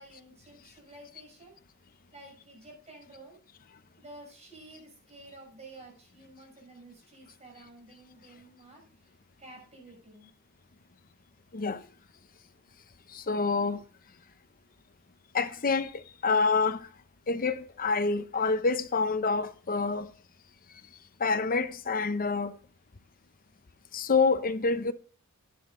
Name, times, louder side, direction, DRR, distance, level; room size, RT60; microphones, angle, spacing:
voice 1, 0.0-1.6 2.1-3.4 4.0-9.1 9.4-10.3, right 2 dB, 30° right, 6.3 m, -51 dB
voice 2, 13.1-13.8 15.3-16.9 17.3-20.1 21.2-22.5 23.9-24.9, left 4 dB, 40° left, 0.7 m, -27 dB
11.5 x 10.0 x 3.8 m
head